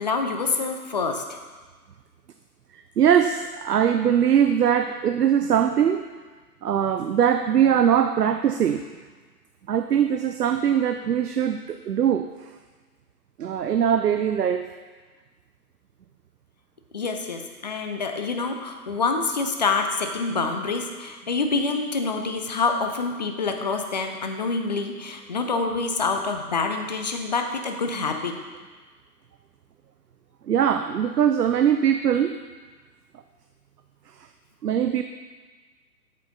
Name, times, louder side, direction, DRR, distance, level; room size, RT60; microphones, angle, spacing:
voice 1, 0.0-1.4 16.9-28.4, left 4 dB, 30° left, 5 dB, 0.5 m, -26 dB
voice 2, 2.7-6.0 6.6-8.8 9.7-12.3 13.4-14.7 30.5-32.4 34.6-35.0, right 9 dB, 70° right, 8 dB, 0.6 m, -21 dB
8.3 x 7.2 x 3.9 m, 1.4 s
figure-of-eight pair, 130°, 49 cm